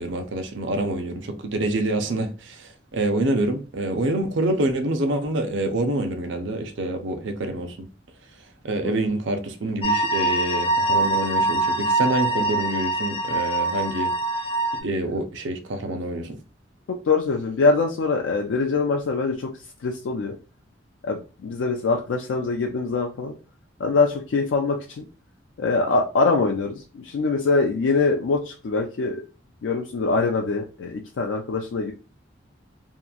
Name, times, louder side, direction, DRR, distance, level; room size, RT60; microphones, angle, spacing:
voice 1, 0.0-7.9 8.6-14.1 14.8-16.4, right 2 dB, 75° right, 0.5 m, -26 dB
sound 1, 9.8-14.8, right 2 dB, 30° left, 0.5 m, -23 dB
voice 2, 16.9-19.5 19.8-20.3 21.0-23.4 23.8-25.0 25.6-29.2 29.6-31.9, left 4 dB, 90° left, 0.4 m, -23 dB
2.8 x 2.4 x 2.3 m
head